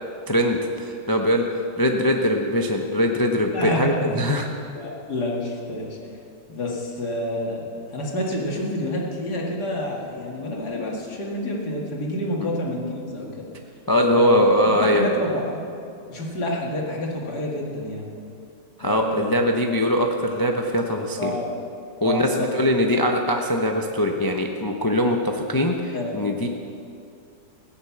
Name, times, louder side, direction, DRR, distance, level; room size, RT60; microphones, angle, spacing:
voice 1, 0.3-1.4 1.8-4.5 13.9-15.2 18.8-21.3 22.0-26.5, equal, 20° left, 2 dB, 0.5 m, -21 dB
voice 2, 3.5-4.0 4.7-6.0 6.5-13.4 14.1-14.4 14.8-15.6 16.1-18.1 18.8-19.4 21.2-21.5 22.0-22.5 22.9-23.0 25.9-26.5, left 1 dB, 65° left, -2 dB, 2.6 m, -28 dB
15.5 x 9.9 x 7.1 m, 2.6 s
omnidirectional pair, 1.9 m